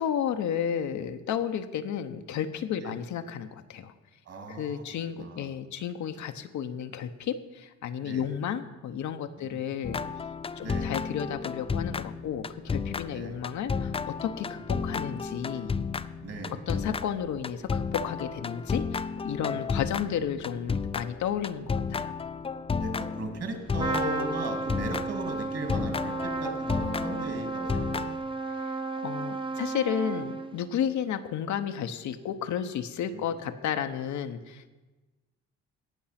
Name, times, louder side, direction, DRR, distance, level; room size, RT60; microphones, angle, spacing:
voice 1, 0.0-3.9 4.5-10.0 10.6-15.7 16.5-22.1 28.7-28.8 29.0-34.7, left 8 dB, 70° left, 8 dB, 0.9 m, -32 dB
voice 2, 4.3-5.5 8.0-8.3 9.4-9.8 10.6-10.9 13.1-13.4 14.4-14.6 16.2-16.6 19.4-20.0 22.7-28.3 33.1-33.6, right 2 dB, 50° right, 5 dB, 2.5 m, -38 dB
sound 1, 9.8-25.3 25.7-28.2, left 5 dB, 20° left, 0.4 m, -32 dB
Trumpet, 23.8-30.7, right 3 dB, 15° right, 0.8 m, -33 dB
17.5 x 6.0 x 5.8 m, 1.2 s
cardioid pair, 90°, 30 cm